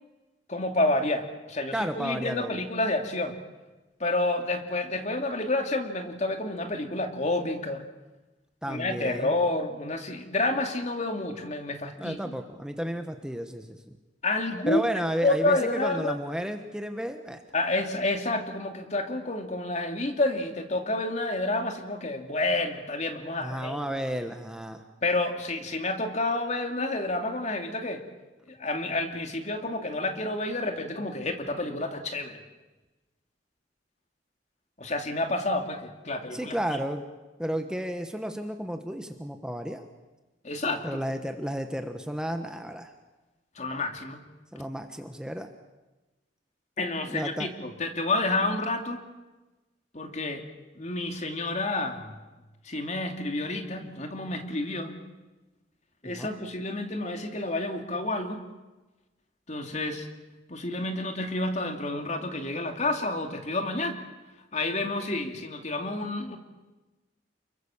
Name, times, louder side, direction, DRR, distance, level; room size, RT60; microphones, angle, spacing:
voice 1, 0.5-3.4 4.0-7.8 8.6-12.3 14.2-14.8 15.2-16.2 17.5-23.8 25.0-28.0 28.5-32.4 34.8-36.6 40.4-41.0 43.6-44.2 46.8-49.0 49.9-50.5 50.8-52.2 52.7-55.0 56.0-58.4 59.5-60.1 60.5-63.9 64.5-66.4, left 2 dB, 40° left, 5 dB, 2.6 m, -29 dB
voice 2, 1.7-2.6 8.6-9.3 12.0-13.9 14.7-17.4 23.4-24.8 36.3-37.1 37.4-39.8 40.8-42.9 44.5-45.5 47.1-47.5 56.0-56.3, equal, 5° right, 6 dB, 1.2 m, -32 dB
29.5 x 22.5 x 7.3 m, 1.2 s
head